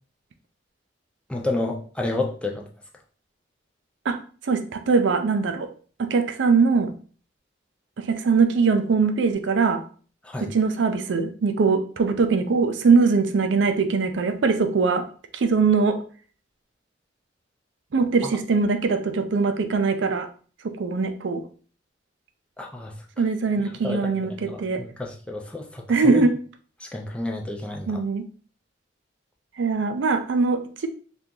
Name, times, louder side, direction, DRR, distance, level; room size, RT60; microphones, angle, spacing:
voice 1, 1.3-2.7 10.2-10.5 18.2-18.3 22.6-22.9 23.8-26.3 26.8-28.0, left 2 dB, 5° left, 0 dB, 0.4 m, -30 dB
voice 2, 4.5-5.7 6.0-6.9 8.0-9.8 10.4-15.1 15.3-16.0 17.9-20.3 20.6-21.4 23.2-24.8 25.9-26.3 27.9-28.3 29.6-30.9, right 4 dB, 75° right, 7 dB, 0.4 m, -21 dB
2.8 x 2.3 x 3.6 m, 0.41 s
head